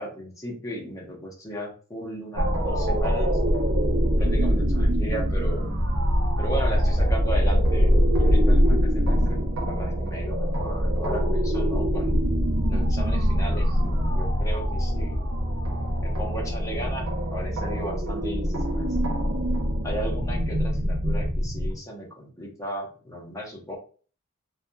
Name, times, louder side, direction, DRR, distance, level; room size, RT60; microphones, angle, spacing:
voice 1, 0.0-3.4 4.2-5.6 6.4-12.2 12.7-15.3 16.0-19.2 19.8-23.8, right 1 dB, 15° left, -1 dB, 0.8 m, -35 dB
sound 1, 2.3-21.7, equal, 70° right, 0.7 m, -23 dB
2.7 x 2.3 x 2.2 m, 0.39 s
head